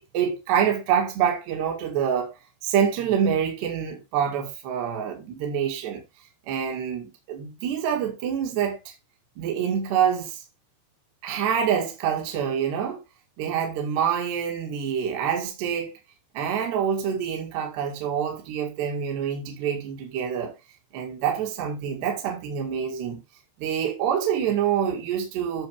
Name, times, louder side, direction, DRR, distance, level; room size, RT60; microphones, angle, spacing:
voice 1, 0.1-2.3 2.6-6.0 6.5-8.9 9.4-10.4 11.2-13.0 13.4-15.9 16.4-20.5 20.9-23.2 23.6-25.7, right 8 dB, 65° right, 3.8 m, -26 dB
11.5 x 6.4 x 3.4 m
omnidirectional pair, 5.3 m